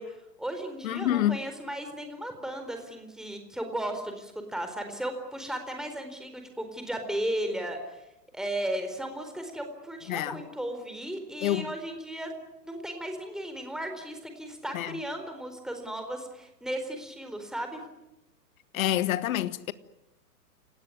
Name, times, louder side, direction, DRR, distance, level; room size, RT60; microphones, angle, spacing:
voice 1, 0.0-8.0 8.3-12.4 12.7-17.8, right 1 dB, ahead, 4.3 m, -35 dB
voice 2, 0.8-1.4 10.1-10.4 11.4-11.7 14.7-15.0 18.7-19.7, left 13 dB, 55° left, 1.6 m, -27 dB
29.5 x 19.0 x 9.6 m
hypercardioid pair, 115°, 49 cm